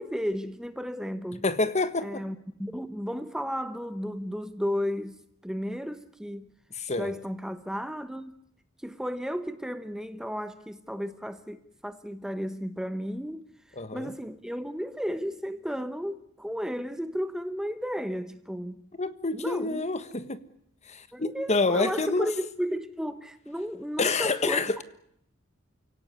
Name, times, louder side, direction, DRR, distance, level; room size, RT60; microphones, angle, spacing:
voice 1, 0.0-1.4 2.0-6.5 7.0-8.3 8.8-13.4 13.9-18.8 19.3-19.8 21.1-24.6, equal, 5° right, 1.0 m, -33 dB
voice 2, 1.4-2.2 6.7-7.1 13.8-14.1 19.0-20.4 20.9-22.3 24.0-24.8, left 3 dB, 35° left, 1.4 m, -27 dB
29.5 x 17.5 x 9.7 m
head